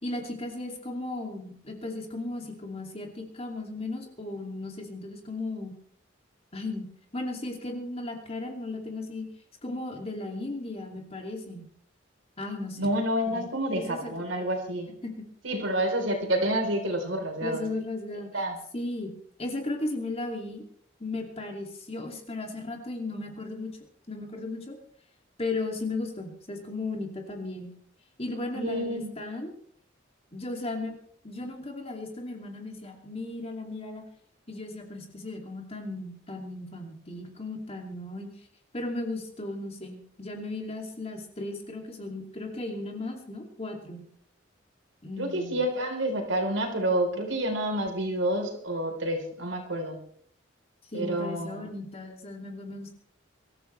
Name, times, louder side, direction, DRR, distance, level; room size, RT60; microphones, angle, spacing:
voice 1, 0.0-5.7 6.5-9.3 9.6-11.7 12.4-12.9 13.3-13.5 13.7-14.1 15.0-15.1 15.5-15.6 17.4-18.4 18.7-19.1 19.4-20.6 21.0-23.7 24.1-24.8 25.4-27.7 28.2-29.5 30.3-30.9 31.2-34.0 34.5-38.3 38.7-44.0 45.0-45.6 50.9-52.9, left 2 dB, 30° left, 2 dB, 2.6 m, -36 dB
voice 2, 12.8-14.9 15.4-17.6 18.3-18.6 28.5-29.1 45.2-50.0 50.9-51.7, right 1 dB, 75° right, 3 dB, 3.9 m, -28 dB
24.0 x 14.0 x 3.3 m, 0.62 s
head